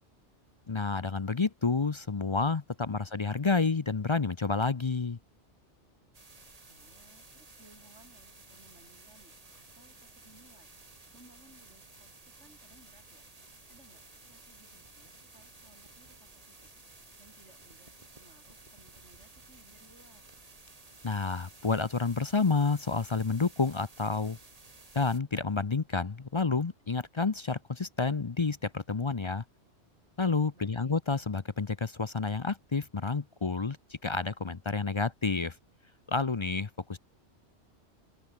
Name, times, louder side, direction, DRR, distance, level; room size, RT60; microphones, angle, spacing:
voice 1, 0.7-5.2 21.0-24.4 24.9-29.4 30.2-35.6 36.1-37.0, left 4 dB, 30° left, 0.6 m, -29 dB
sound 1, 6.1-25.2, right 3 dB, 30° right, 2.0 m, -54 dB
voice 2, 6.7-13.3 13.7-16.7 17.2-20.3 30.5-31.0, right 2 dB, 75° right, 6.5 m, -61 dB
open air
omnidirectional pair, 1.2 m